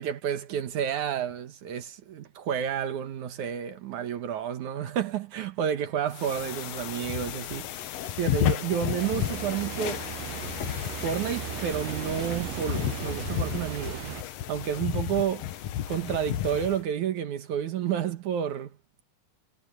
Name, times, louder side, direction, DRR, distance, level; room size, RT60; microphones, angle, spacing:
voice 1, 0.0-7.7 8.2-10.0 11.0-14.0 14.5-15.4 15.9-18.7, right 9 dB, 70° right, 2.6 m, -30 dB
sound 1, 6.1-16.8, left 12 dB, 70° left, 1.6 m, -33 dB
Ocean, 9.0-14.2, right 16 dB, 90° right, 2.4 m, -37 dB
omnidirectional pair, 3.8 m